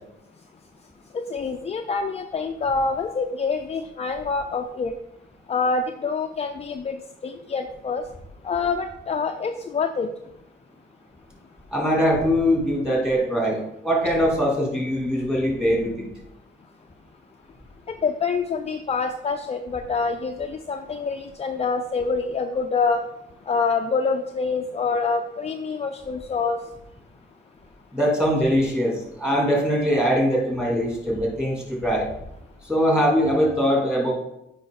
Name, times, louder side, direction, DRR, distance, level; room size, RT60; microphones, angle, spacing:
voice 1, 1.1-4.9 5.5-8.0 8.4-10.1 17.9-23.0 23.5-26.6, left 4 dB, 30° left, 5 dB, 0.5 m, -26 dB
voice 2, 11.7-16.1 27.9-32.1 32.6-34.1, equal, 5° right, -2 dB, 3.1 m, -22 dB
8.8 x 5.1 x 3.9 m, 0.84 s
cardioid pair, 90°, 20 cm